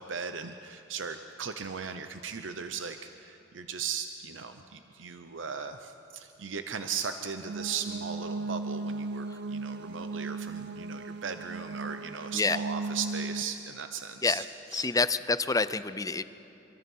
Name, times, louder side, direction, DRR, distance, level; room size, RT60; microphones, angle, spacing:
voice 1, 0.0-14.4 14.7-14.9, right 6 dB, 80° right, 8 dB, 0.8 m, -37 dB
sound 1, 7.4-13.4, right 3 dB, 60° right, 0.5 m, -36 dB
voice 2, 14.7-16.2, left 3 dB, 20° left, 13 dB, 0.6 m, -27 dB
26.5 x 23.0 x 5.5 m, 2.9 s
head